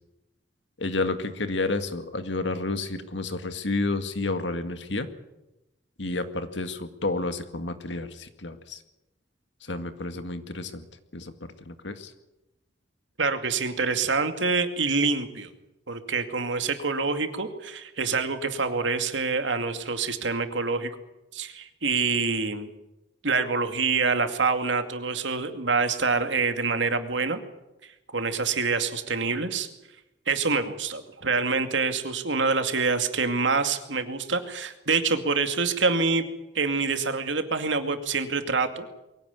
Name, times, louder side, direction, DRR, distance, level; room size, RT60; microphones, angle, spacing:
voice 1, 0.8-5.1 6.0-8.8 9.6-10.8 11.1-12.1, left 2 dB, 75° left, 9 dB, 2.0 m, -30 dB
voice 2, 13.2-15.5 15.9-20.9 21.3-22.7 23.2-27.4 28.1-29.7 30.3-36.3 36.5-38.9, right 4 dB, 90° right, 7 dB, 2.4 m, -26 dB
23.0 x 16.5 x 9.6 m, 0.96 s
head